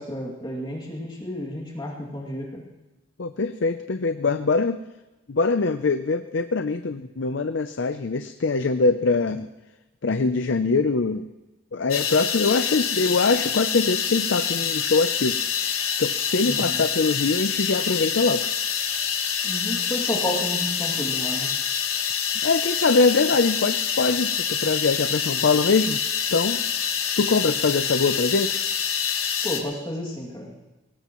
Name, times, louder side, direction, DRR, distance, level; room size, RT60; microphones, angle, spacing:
voice 1, 0.0-2.6 16.5-16.8 19.4-21.5 29.4-30.5, equal, 20° left, -2 dB, 2.4 m, -31 dB
voice 2, 3.2-4.8 5.3-9.5 10.0-11.3 11.7-18.5 22.4-26.0 26.3-26.6 27.2-28.6, left 4 dB, 60° left, 10 dB, 0.5 m, -23 dB
sound 1, 11.9-29.6, left 7 dB, 90° left, 1.8 m, -26 dB
21.5 x 18.0 x 3.1 m, 1.1 s
head